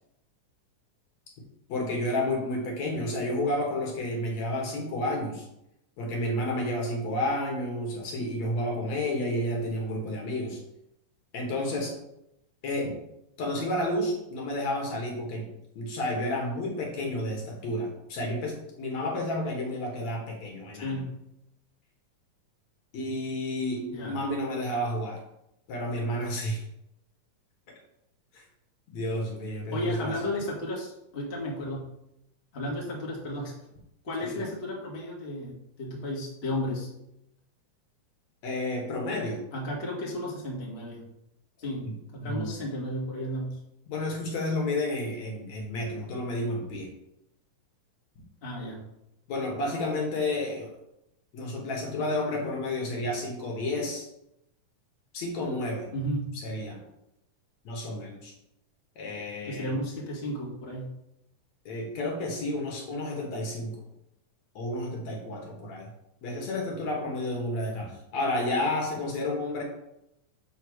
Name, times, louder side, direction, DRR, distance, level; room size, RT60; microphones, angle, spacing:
voice 1, 1.7-5.5 6.0-10.6 11.3-11.9 12.6-13.0 13.4-15.5 15.8-21.0 22.9-25.2 25.7-26.6 28.3-28.4 28.9-30.1 34.2-34.5 38.4-39.4 41.8-41.9 42.2-42.6 43.9-46.9 49.3-50.7 51.3-54.1 55.1-55.9 56.4-56.8 57.6-58.3 59.0-59.8 61.7-63.8 64.6-65.9 66.2-69.6, left 1 dB, 65° left, 0 dB, 2.7 m, -31 dB
voice 2, 20.8-21.1 23.9-24.2 29.7-31.8 32.5-33.5 34.0-36.9 39.5-41.0 41.6-43.6 48.4-48.8 55.9-56.3 59.4-60.9, left 1 dB, 25° left, -4 dB, 1.7 m, -33 dB
6.4 x 4.9 x 6.2 m, 0.83 s
omnidirectional pair, 3.5 m